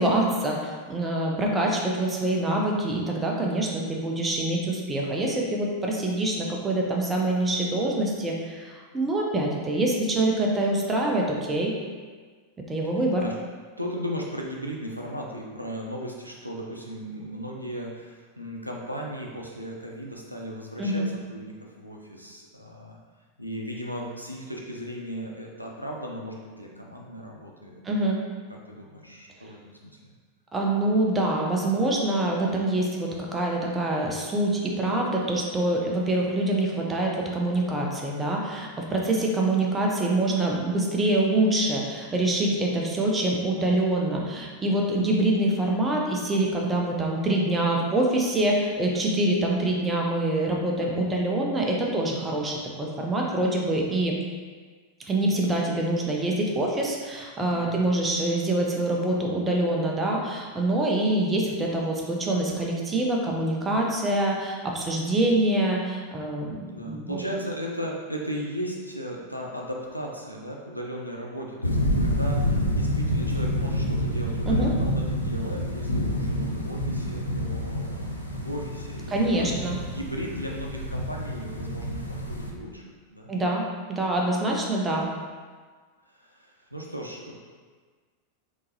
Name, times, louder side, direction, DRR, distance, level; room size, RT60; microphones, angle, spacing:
voice 1, 0.0-11.7 12.7-13.3 20.8-21.1 27.8-28.2 30.5-54.2 55.1-67.2 74.5-74.7 79.1-79.8 83.3-85.1, right 1 dB, 15° right, -1 dB, 0.6 m, -25 dB
voice 2, 13.8-23.0 23.4-28.1 28.7-30.1 57.5-57.8 66.7-79.5 79.9-82.8 83.1-83.3 86.1-87.3, equal, 90° right, -1 dB, 0.4 m, -36 dB
sound 1, 71.6-82.5, equal, 85° left, 0.4 m, -28 dB
3.7 x 2.8 x 2.7 m, 1.5 s
figure-of-eight pair, 90°, 0 cm